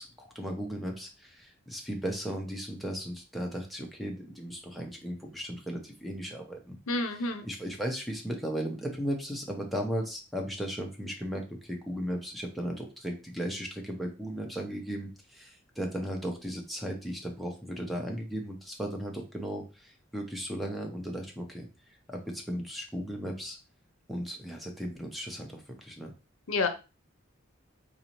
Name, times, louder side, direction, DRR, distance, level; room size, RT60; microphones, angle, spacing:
voice 1, 0.0-6.8 7.4-21.7 22.1-23.6 24.1-26.1, equal, ahead, 0 dB, 0.6 m, -36 dB
voice 2, 6.9-7.5 26.5-26.7, left 3 dB, 80° left, 8 dB, 0.6 m, -29 dB
4.0 x 2.7 x 3.0 m, 0.31 s
head